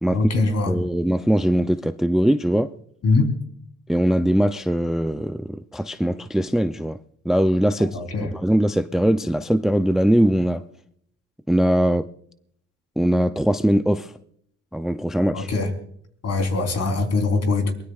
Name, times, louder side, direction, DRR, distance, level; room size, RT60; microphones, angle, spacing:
voice 1, 0.1-0.7 3.0-3.3 7.8-8.3 15.3-15.7 16.2-17.7, left 3 dB, 55° left, 3.9 m, -22 dB
voice 2, 0.7-2.7 3.9-7.0 7.3-8.0 8.3-10.6 11.5-12.1 13.0-14.1 14.7-15.5, equal, ahead, 0.5 m, -21 dB
22.5 x 20.0 x 2.4 m
cardioid pair, 90°, 30 cm